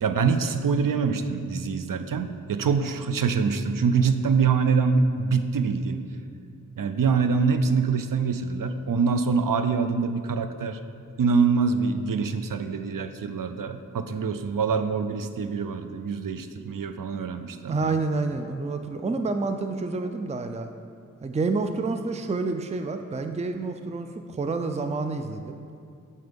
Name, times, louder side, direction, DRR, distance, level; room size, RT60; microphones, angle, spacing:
voice 1, 0.0-6.0 6.8-10.8 11.2-18.0, right 5 dB, 85° right, 9 dB, 0.5 m, -25 dB
voice 2, 17.7-20.7 21.2-25.6, right 3 dB, 20° right, 7 dB, 0.4 m, -28 dB
8.0 x 4.3 x 5.2 m, 2.4 s
wide cardioid pair, 55°, 32 cm